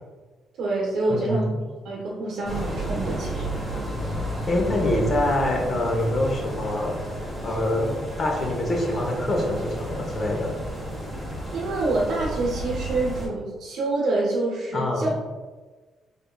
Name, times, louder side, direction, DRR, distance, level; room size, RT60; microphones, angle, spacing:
voice 1, 0.6-1.5 1.8-3.5 11.5-15.1, right 2 dB, 75° right, -4 dB, 0.7 m, -26 dB
voice 2, 1.1-1.5 3.0-3.2 4.5-6.9 7.4-7.9 8.2-10.5 14.7-15.1, left 1 dB, 45° left, 0 dB, 0.8 m, -25 dB
sound 1, 2.4-13.3, right 1 dB, 5° left, 1.2 m, -32 dB
3.5 x 3.4 x 2.3 m, 1.3 s
cardioid pair, 90°, 0 cm